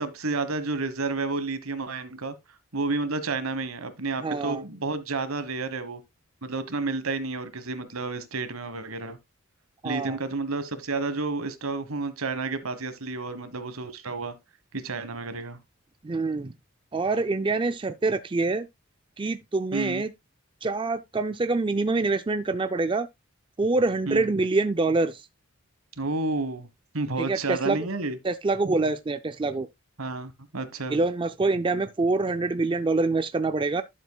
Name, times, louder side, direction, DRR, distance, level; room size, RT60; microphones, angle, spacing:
voice 1, 0.0-2.3 2.7-6.0 6.4-9.2 9.8-14.3 14.7-15.6 19.7-20.0 24.1-24.3 26.0-26.7 26.9-28.2 30.0-31.0, right 3 dB, 75° right, 1.4 m, -30 dB
voice 2, 4.2-4.6 9.8-10.2 16.0-16.5 16.9-18.7 19.2-20.1 20.6-23.1 23.6-25.2 27.2-27.8 28.2-29.7 30.9-33.8, right 3 dB, 25° right, 0.4 m, -25 dB
11.5 x 7.4 x 2.3 m
head